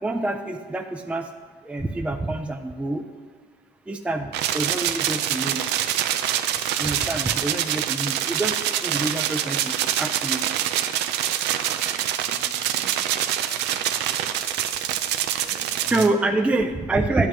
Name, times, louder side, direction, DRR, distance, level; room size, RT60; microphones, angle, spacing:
voice 1, 0.0-1.3 1.6-3.0 3.9-5.6 6.8-10.4 15.9-17.3, right 2 dB, 5° right, 5 dB, 0.4 m, -26 dB
sound 1, 4.3-16.1, right 11 dB, 90° right, 0.5 m, -25 dB
voice 2, 12.2-13.9 15.4-15.7 16.1-16.7, right 3 dB, 65° right, 1 dB, 1.5 m, -47 dB
10.5 x 8.7 x 3.0 m, 1.6 s
cardioid pair, 110°, 17 cm